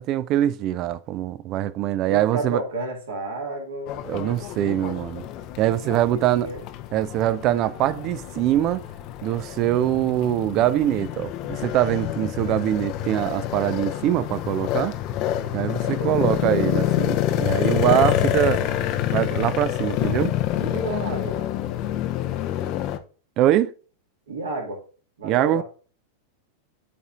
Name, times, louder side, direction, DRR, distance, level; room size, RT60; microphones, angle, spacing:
voice 1, 0.0-2.6 4.1-5.2 5.6-6.5 6.9-8.8 9.2-15.0 15.5-18.6 19.1-20.3 23.4-23.7 25.2-25.6, right 13 dB, 40° right, 0.4 m, -23 dB
voice 2, 2.1-3.9 5.9-6.7 15.8-16.4 20.6-21.4 24.3-24.8 25.2-25.6, right 2 dB, 65° right, 2.0 m, -31 dB
sound 1, 3.9-23.0, left 12 dB, 40° left, 0.6 m, -27 dB
11.5 x 4.1 x 2.5 m
figure-of-eight pair, 90°, 0 cm